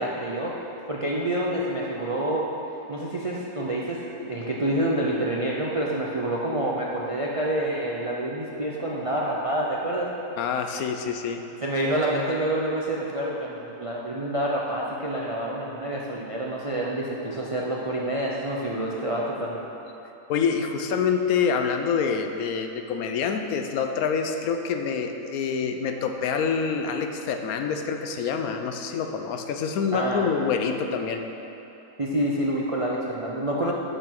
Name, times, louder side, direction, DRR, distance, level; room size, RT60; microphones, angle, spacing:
voice 1, 0.0-2.5 2.9-10.1 11.6-19.7 29.9-30.2 32.0-33.7, right 1 dB, 45° right, -3 dB, 0.4 m, -27 dB
voice 2, 10.4-11.5 20.3-31.2, left 6 dB, 80° left, 5 dB, 1.1 m, -26 dB
6.9 x 6.6 x 5.9 m, 3.0 s
omnidirectional pair, 1.5 m